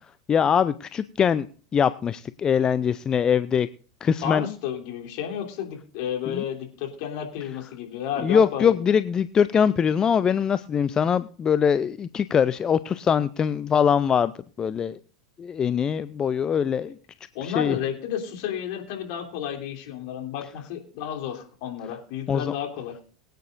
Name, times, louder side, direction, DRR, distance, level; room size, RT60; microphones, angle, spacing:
voice 1, 0.3-1.5 1.7-3.7 4.0-4.5 6.3-6.4 8.2-14.3 14.6-15.0 15.4-17.0 17.4-17.8 22.3-22.5, left 7 dB, 25° left, 15 dB, 0.5 m, -22 dB
voice 2, 4.2-8.8 17.3-22.9, left 9 dB, 55° left, 3 dB, 3.2 m, -32 dB
23.0 x 9.2 x 2.6 m, 0.42 s
figure-of-eight pair, 85°, 3 cm